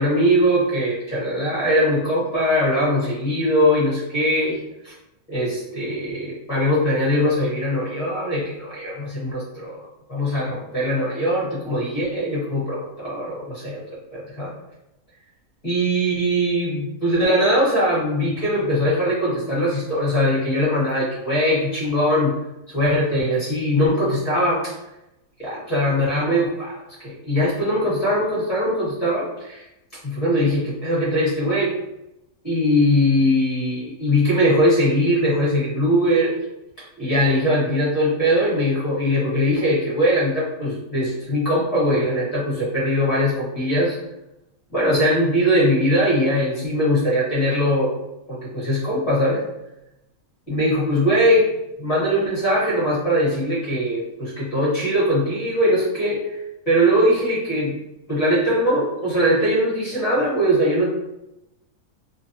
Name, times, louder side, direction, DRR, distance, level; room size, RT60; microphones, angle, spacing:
voice 1, 0.0-4.9 5.3-13.8 14.1-14.5 15.6-22.3 22.7-24.7 25.4-29.6 30.0-31.8 32.4-36.3 36.8-44.0 44.7-47.9 48.3-49.4 50.5-51.5 51.8-56.2 56.7-57.8 58.1-60.9, equal, 25° left, -9 dB, 1.1 m, -21 dB
2.7 x 2.1 x 2.7 m, 0.89 s
omnidirectional pair, 1.6 m